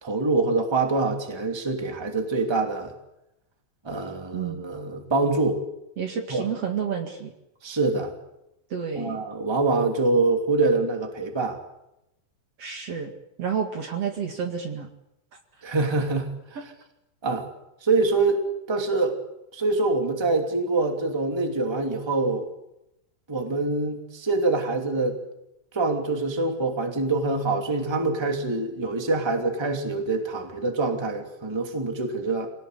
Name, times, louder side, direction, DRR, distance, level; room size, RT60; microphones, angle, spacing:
voice 1, 0.0-2.9 3.8-5.6 6.3-6.4 7.6-8.1 9.0-11.6 15.6-16.3 17.2-17.5 17.8-19.2 19.5-22.5 23.3-25.2 25.7-32.5, right 3 dB, 10° right, 4 dB, 2.3 m, -25 dB
voice 2, 4.3-4.7 6.0-7.3 8.7-9.2 12.6-13.1 13.4-14.9, right 7 dB, 50° right, 4 dB, 2.9 m, -30 dB
26.0 x 18.5 x 8.3 m, 0.86 s
omnidirectional pair, 3.9 m